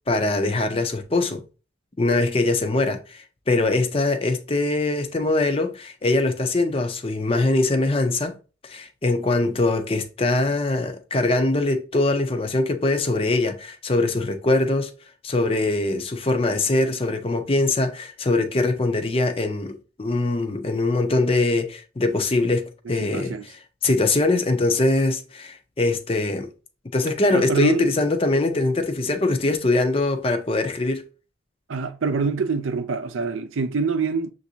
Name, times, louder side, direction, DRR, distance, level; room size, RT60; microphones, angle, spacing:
voice 1, 0.1-1.4 2.0-8.4 8.6-14.9 15.2-23.3 23.8-26.5 26.9-31.1, left 2 dB, 30° left, 0.5 m, -22 dB
voice 2, 23.1-23.4 27.3-27.9 31.7-34.3, right 4 dB, 85° right, 0.5 m, -25 dB
6.9 x 2.6 x 2.7 m
head